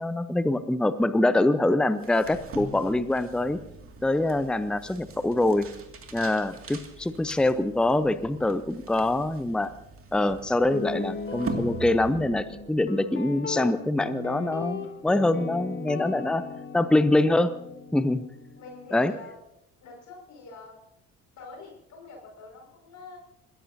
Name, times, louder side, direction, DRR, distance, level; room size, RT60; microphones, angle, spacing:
voice 1, 0.0-3.6 4.0-5.7 6.1-9.7 10.1-16.4 16.7-17.5 17.9-18.2 18.9-19.1, left 2 dB, ahead, 14 dB, 0.8 m, -24 dB
sound 1, 1.9-12.5, right 3 dB, 35° right, 2.3 m, -42 dB
Guitar, 10.7-18.9, left 5 dB, 30° left, 2.8 m, -37 dB
sound 2, 11.2-13.1, right 10 dB, 55° right, 0.9 m, -43 dB
voice 2, 18.5-19.4 19.8-20.8 21.3-23.2, left 3 dB, 50° left, 0 dB, 5.9 m, -45 dB
29.5 x 16.0 x 2.8 m, 0.82 s
figure-of-eight pair, 50°, 38 cm